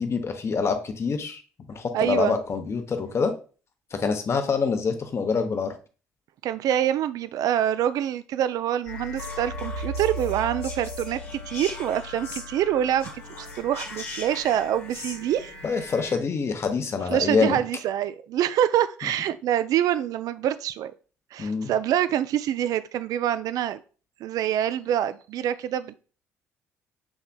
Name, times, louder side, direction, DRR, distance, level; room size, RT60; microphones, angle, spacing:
voice 1, 0.0-1.4 1.7-3.3 3.9-5.7 15.6-17.6 21.4-21.7, left 5 dB, 35° left, 0.8 m, -25 dB
voice 2, 1.9-2.4 6.4-13.1 13.4-15.5 17.1-20.9 21.3-23.8 24.2-25.9, right 11 dB, 55° right, 0.3 m, -25 dB
sound 1, 8.9-16.2, left 1 dB, 85° left, 1.1 m, -36 dB
7.1 x 3.2 x 2.2 m
hypercardioid pair, 55°, 7 cm